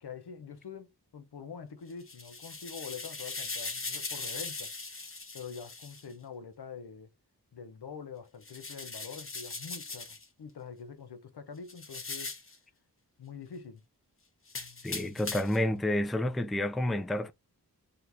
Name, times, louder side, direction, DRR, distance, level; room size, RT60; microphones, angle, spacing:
voice 1, 0.0-7.1 7.5-12.3 13.2-13.8, left 6 dB, 80° left, 0.7 m, -45 dB
sound 1, 1.9-6.0 8.4-10.3 11.7-12.6 14.5-15.7, left 3 dB, 35° left, 0.8 m, -40 dB
voice 2, 14.8-17.3, left 1 dB, ahead, 0.4 m, -29 dB
2.8 x 2.5 x 3.3 m
wide cardioid pair, 45°, 39 cm